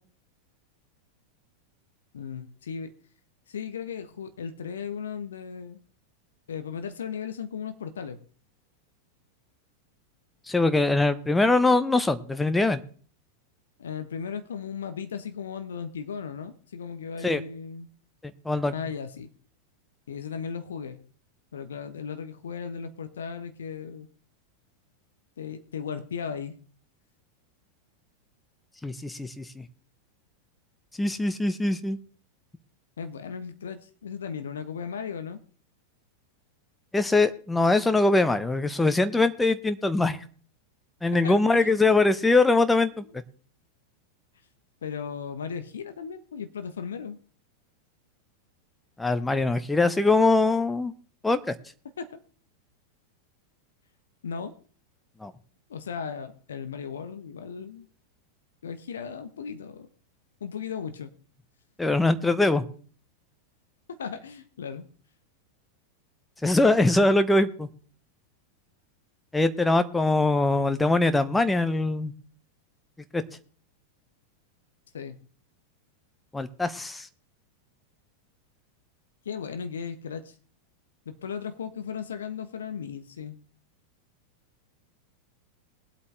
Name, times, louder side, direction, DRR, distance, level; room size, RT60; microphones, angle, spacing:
voice 1, 2.1-2.9 3.5-5.8 6.5-8.2 13.8-17.9 18.7-19.3 20.1-21.0 21.5-24.1 25.4-26.6 33.0-35.4 41.2-41.7 44.8-47.2 52.0-52.2 54.2-54.5 55.7-57.9 58.6-59.9 60.4-61.1 63.9-64.8 74.9-75.2 79.2-80.3 81.1-83.4, left 6 dB, 65° left, 9 dB, 1.1 m, -36 dB
voice 2, 10.5-12.8 17.2-17.4 18.4-18.7 28.8-29.6 31.0-32.0 36.9-40.2 41.0-43.2 49.0-50.9 51.2-51.5 55.2-55.3 61.8-62.6 66.4-67.7 69.3-72.1 73.1-73.2 76.3-77.1, left 2 dB, 10° left, 10 dB, 1.0 m, -22 dB
21.0 x 8.4 x 3.3 m, 0.43 s
figure-of-eight pair, 90°, 0 cm